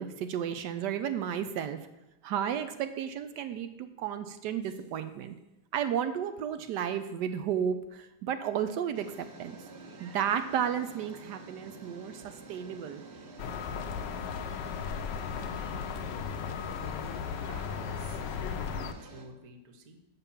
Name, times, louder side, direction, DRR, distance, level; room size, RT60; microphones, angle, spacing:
voice 1, 0.0-1.8 2.2-5.4 5.7-9.6 10.0-13.0, right 8 dB, 75° right, 10 dB, 1.2 m, -33 dB
sound 1, 4.6-5.1 6.8-6.9 9.0-19.3, right 3 dB, 60° right, 1.7 m, -49 dB
sound 2, 13.4-18.9, left 7 dB, 80° left, 1.2 m, -36 dB
voice 2, 17.5-20.0, right 2 dB, 35° right, 6 dB, 0.7 m, -51 dB
6.7 x 6.0 x 7.0 m, 0.92 s
omnidirectional pair, 1.9 m